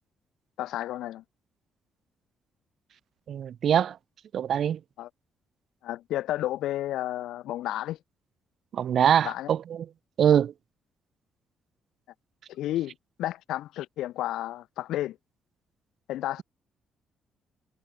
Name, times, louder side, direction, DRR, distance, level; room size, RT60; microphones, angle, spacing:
voice 1, 0.6-1.2 5.0-5.1 5.8-8.0 9.2-9.5 12.5-15.2 16.1-16.4, left 14 dB, 85° left, 2.8 m, -32 dB
voice 2, 3.3-4.0 4.3-4.8 8.7-9.6 10.2-10.5, right 9 dB, 60° right, 2.4 m, -23 dB
cardioid pair, 90°, 0 cm